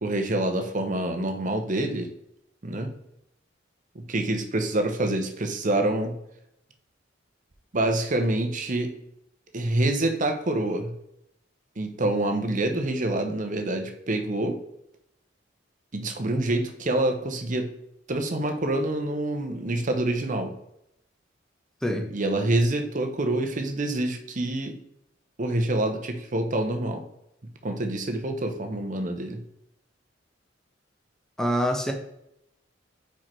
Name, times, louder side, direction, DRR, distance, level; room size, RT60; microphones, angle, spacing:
voice 1, 0.0-2.1 2.6-2.9 3.9-6.1 7.7-8.9 9.5-10.9 11.8-14.6 15.9-17.7 18.1-20.5 22.1-24.8 25.4-27.0 27.6-29.4, right 1 dB, 45° right, 5 dB, 0.8 m, -26 dB
voice 2, 31.4-31.9, equal, 5° left, 2 dB, 0.8 m, -25 dB
4.7 x 4.5 x 4.4 m, 0.79 s
head